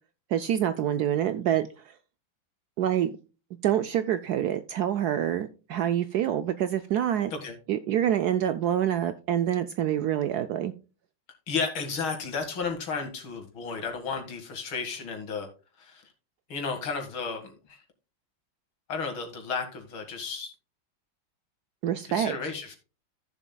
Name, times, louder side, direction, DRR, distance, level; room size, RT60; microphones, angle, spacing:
voice 1, 0.3-1.9 2.8-3.1 3.6-7.3 7.7-10.7 21.8-22.4, right 10 dB, 75° right, 0.9 m, -26 dB
voice 2, 11.5-15.5 15.8-16.0 16.5-17.8 18.9-20.5 22.1-22.8, left 5 dB, 90° left, 2.7 m, -33 dB
14.5 x 7.0 x 2.3 m
omnidirectional pair, 2.2 m